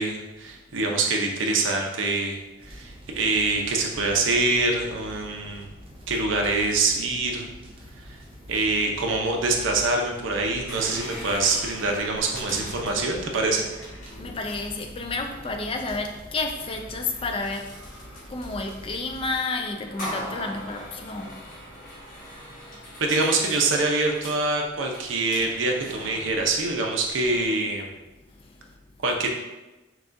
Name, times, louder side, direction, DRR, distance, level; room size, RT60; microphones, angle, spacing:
voice 1, 0.0-2.4 2.6-5.7 6.1-7.4 8.1-8.2 8.5-13.6 23.0-28.0 29.0-29.3, right 3 dB, 75° right, 1 dB, 0.6 m, -25 dB
sound 1, 2.6-19.4, equal, 30° right, 0.5 m, -45 dB
sound 2, 10.6-27.5, equal, 45° left, 1.4 m, -42 dB
voice 2, 14.1-17.7 18.2-21.4 22.1-22.2, left 3 dB, 30° left, 4 dB, 0.3 m, -31 dB
5.9 x 2.4 x 2.6 m, 1.1 s
head